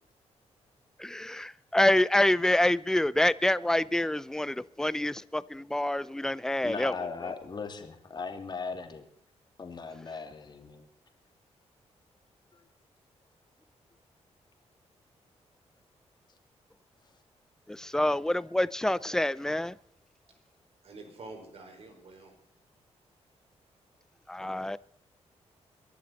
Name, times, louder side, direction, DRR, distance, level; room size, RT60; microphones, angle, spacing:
voice 1, 1.0-6.9 17.7-19.8 24.3-24.8, left 1 dB, 5° left, 0.5 m, -27 dB
voice 2, 6.6-9.1 9.6-10.9 12.5-12.6, left 4 dB, 40° left, 2.4 m, -38 dB
voice 3, 20.8-22.4, right 2 dB, 60° right, 5.2 m, -47 dB
23.5 x 12.0 x 4.1 m
cardioid pair, 120°, 12 cm